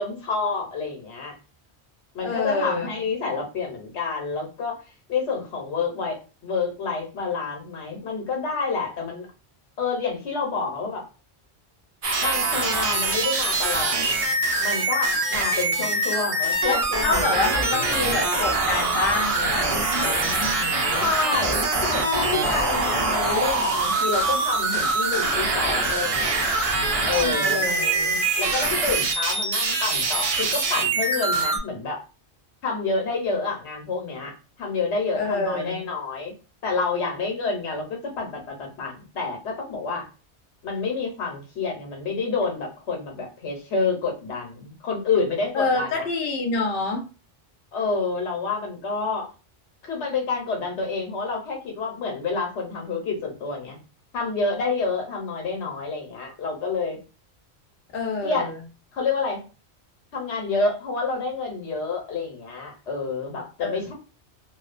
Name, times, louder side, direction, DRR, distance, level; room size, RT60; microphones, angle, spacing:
voice 1, 0.0-1.3 2.1-4.8 5.1-9.3 9.8-11.0 12.2-17.8 20.9-26.5 27.0-32.0 32.6-36.3 36.6-40.1 40.6-46.0 47.7-49.3 49.8-53.8 54.1-57.0 58.2-58.5 58.9-59.4 60.1-63.9, left 4 dB, 90° left, 1 dB, 1.1 m, -28 dB
voice 2, 2.2-2.9 16.7-21.1 27.4-28.2 35.1-35.9 45.5-47.0 57.9-58.6 63.6-63.8, left 3 dB, 60° left, 1 dB, 0.8 m, -27 dB
sound 1, 12.0-31.6, right 3 dB, 45° right, 0.5 m, -24 dB
2.6 x 2.1 x 2.4 m, 0.32 s
omnidirectional pair, 1.1 m